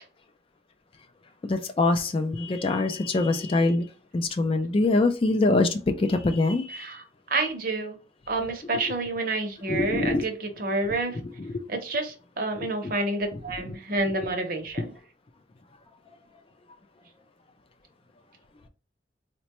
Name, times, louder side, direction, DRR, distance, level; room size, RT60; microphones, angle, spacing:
voice 1, 1.4-3.9 4.1-7.0 9.7-10.3 11.4-11.7 12.6-12.7, left 2 dB, 30° left, 0.3 m, -24 dB
voice 2, 6.7-8.0 8.3-11.2 11.7-14.9, right 2 dB, 50° right, 0.7 m, -29 dB
4.0 x 2.2 x 2.9 m
head